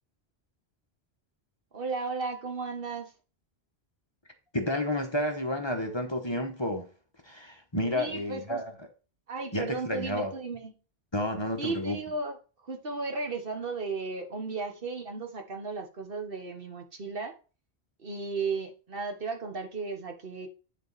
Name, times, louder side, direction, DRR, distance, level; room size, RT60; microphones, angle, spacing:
voice 1, 1.7-3.1 7.9-8.6 9.3-10.7 11.6-12.4 12.6-17.4 18.0-20.5, right 4 dB, 60° right, 1.4 m, -35 dB
voice 2, 4.5-6.8 7.2-8.7 9.5-10.3 11.1-12.0, left 1 dB, 25° left, 1.2 m, -30 dB
9.8 x 4.7 x 4.1 m
omnidirectional pair, 1.1 m